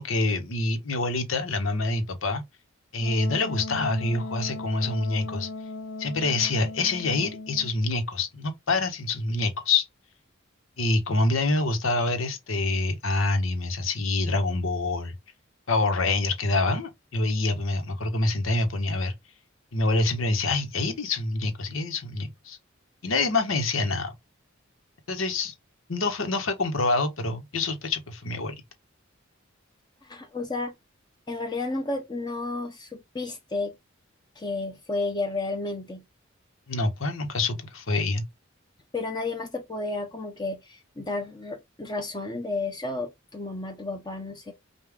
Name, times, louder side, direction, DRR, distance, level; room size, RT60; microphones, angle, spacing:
voice 1, 0.0-2.4 2.9-5.5 6.0-9.9 10.8-15.1 15.7-19.1 19.7-22.6 23.0-24.1 25.1-25.5 25.9-28.5 36.7-38.2, left 2 dB, 85° left, 1.2 m, -26 dB
Wind instrument woodwind instrument, 3.0-7.8, left 3 dB, 70° left, 0.5 m, -37 dB
voice 2, 30.0-30.7 31.3-33.8 34.4-36.0 38.9-44.5, left 2 dB, 20° left, 0.7 m, -32 dB
5.3 x 2.4 x 3.6 m
head